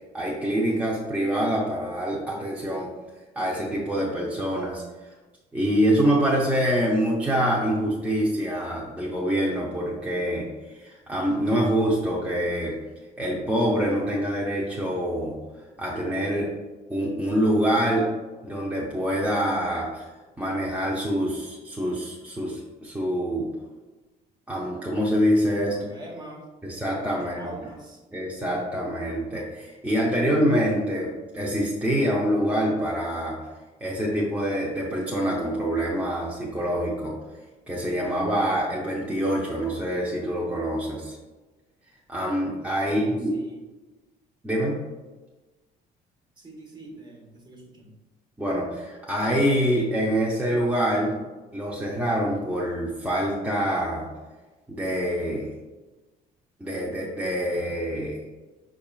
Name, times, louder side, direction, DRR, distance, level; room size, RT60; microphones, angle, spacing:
voice 1, 0.1-2.9 3.4-4.8 5.5-12.8 13.2-15.4 15.8-16.5 16.9-18.1 18.4-20.1 20.4-23.5 24.5-25.7 26.6-27.5 28.1-33.4 33.8-37.2 37.7-41.2 42.1-43.3 44.4-44.8 48.4-51.2 51.5-54.1 54.7-55.5 56.6-58.2, equal, 10° right, -5 dB, 0.7 m, -25 dB
voice 2, 25.7-26.5 27.1-28.0 42.8-43.6 46.4-47.9, right 2 dB, 25° right, 0 dB, 1.1 m, -43 dB
6.0 x 3.6 x 2.4 m, 1.2 s
cardioid pair, 110°, 17 cm